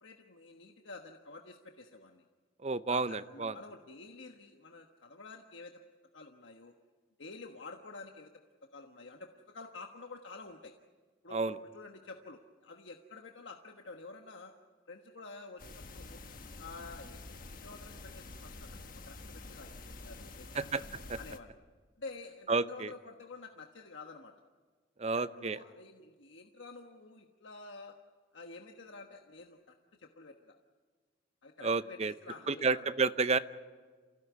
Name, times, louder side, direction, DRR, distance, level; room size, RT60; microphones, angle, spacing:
voice 1, 0.0-2.2 2.9-5.7 6.1-6.7 7.2-8.3 8.7-10.7 11.2-14.5 14.9-16.2 16.6-18.7 19.1-20.8 21.2-21.6 22.0-24.3 25.1-27.9 28.3-30.6 31.4-32.9, left 3 dB, 80° left, 3 dB, 1.3 m, -49 dB
voice 2, 2.6-3.5 11.3-11.6 20.5-20.8 21.1-21.2 22.5-22.9 25.0-25.6 31.6-32.1 32.5-33.4, right 4 dB, 35° right, 13 dB, 0.7 m, -30 dB
sound 1, 15.6-21.4, left 2 dB, 45° left, 1.4 m, -48 dB
28.5 x 16.5 x 9.5 m, 1.5 s
head